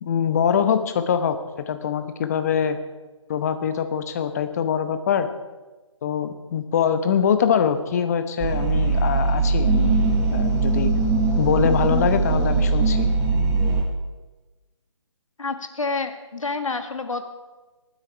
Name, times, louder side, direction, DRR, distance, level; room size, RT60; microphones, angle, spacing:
voice 1, 0.0-2.8 3.3-5.3 6.0-9.9 10.3-10.9 11.4-13.1, left 7 dB, 30° left, 9 dB, 1.1 m, -23 dB
sound 1, 8.4-13.8, right 3 dB, 15° right, 1.7 m, -21 dB
voice 2, 15.4-17.2, left 3 dB, 80° left, 7 dB, 1.9 m, -28 dB
23.0 x 9.4 x 4.5 m, 1.2 s
figure-of-eight pair, 155°, 17 cm